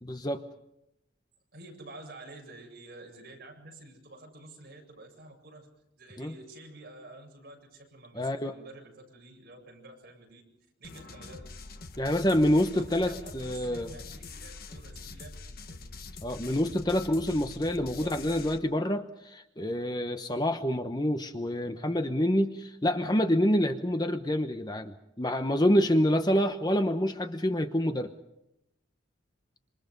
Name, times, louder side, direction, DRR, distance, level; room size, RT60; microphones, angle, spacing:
voice 1, 0.0-0.4 6.2-6.3 8.1-8.5 12.0-13.9 16.2-28.1, equal, 20° left, 7 dB, 0.9 m, -27 dB
voice 2, 1.5-5.7 6.0-10.4 10.8-11.4 12.7-15.8 18.0-18.2, right 2 dB, 50° right, 0 dB, 7.9 m, -49 dB
sound 1, 10.8-18.6, left 3 dB, 45° left, 1.3 m, -44 dB
27.0 x 25.5 x 5.3 m, 0.85 s
head